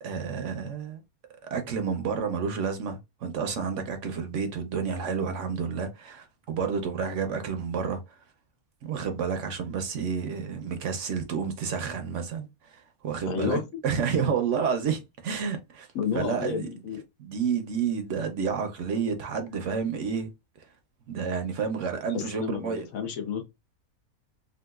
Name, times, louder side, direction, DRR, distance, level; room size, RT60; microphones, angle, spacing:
voice 1, 0.0-1.0 1.4-8.2 8.8-15.9 16.1-16.7 17.2-20.3 20.6-20.7 21.1-22.9, right 6 dB, 65° right, 0.9 m, -30 dB
voice 2, 13.3-13.6 15.9-17.0 22.1-23.4, left 7 dB, 70° left, 1.2 m, -31 dB
3.8 x 2.4 x 2.3 m
omnidirectional pair, 1.5 m